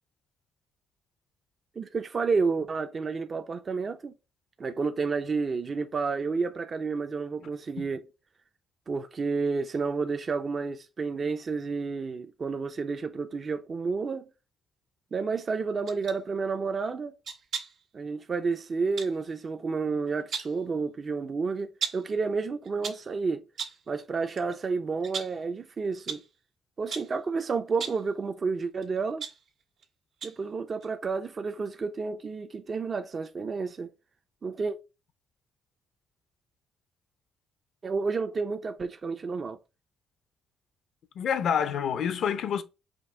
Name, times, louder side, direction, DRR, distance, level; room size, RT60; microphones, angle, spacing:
voice 1, 1.8-4.1 4.6-8.1 8.9-14.3 15.1-17.1 17.9-23.4 23.9-26.2 26.8-29.2 30.2-33.9 34.4-34.8 37.8-39.6, right 4 dB, 40° right, 0.5 m, -30 dB
sound 1, 15.9-16.2 17.2-17.9 19.0-19.2 20.1-20.6 21.8-22.1 22.6-23.1 23.6-23.9 24.4-24.5 25.0-25.5 26.1-26.3 26.9-27.2 27.7-28.1 28.8-29.9 30.2-30.5 30.8-30.9, right 6 dB, 80° right, 1.4 m, -37 dB
voice 2, 41.2-42.6, left 8 dB, 70° left, 0.6 m, -27 dB
5.1 x 2.5 x 3.7 m
cardioid pair, 90°, 0 cm